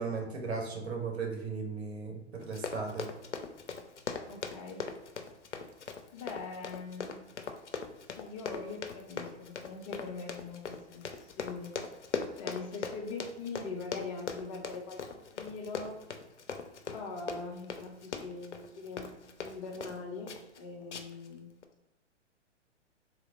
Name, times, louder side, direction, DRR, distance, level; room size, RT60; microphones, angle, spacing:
voice 1, 0.0-3.1, right 4 dB, 60° right, 1 dB, 1.2 m, -36 dB
Run, 2.4-20.0 20.3-20.6 20.9-21.3 21.6-21.7, left 5 dB, 75° left, 0.6 m, -40 dB
voice 2, 4.3-4.9 6.1-7.2 8.2-11.7 12.4-16.0 16.9-19.1 19.4-21.5, left 4 dB, 30° left, 1 dB, 0.6 m, -42 dB
3.7 x 2.8 x 3.8 m, 0.95 s
figure-of-eight pair, 115°, 36 cm